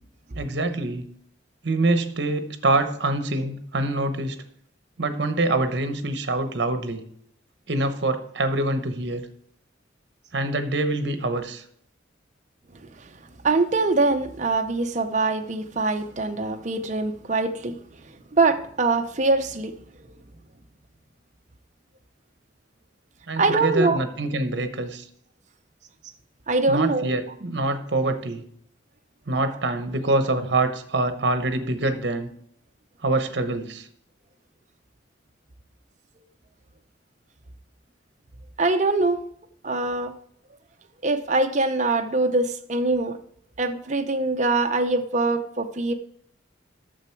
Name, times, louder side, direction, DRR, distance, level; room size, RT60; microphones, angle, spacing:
voice 1, 0.4-1.1 1.6-4.4 5.0-7.0 7.7-9.2 10.3-11.6 23.3-25.1 26.7-28.4 29.3-32.3 33.0-33.9, right 2 dB, 65° right, 9 dB, 1.0 m, -25 dB
voice 2, 13.4-17.8 18.3-19.8 23.4-24.0 26.5-27.1 38.6-39.2 39.6-40.1 41.0-43.2 43.6-45.9, right 3 dB, 40° right, 7 dB, 0.7 m, -23 dB
9.1 x 6.9 x 4.6 m, 0.66 s
head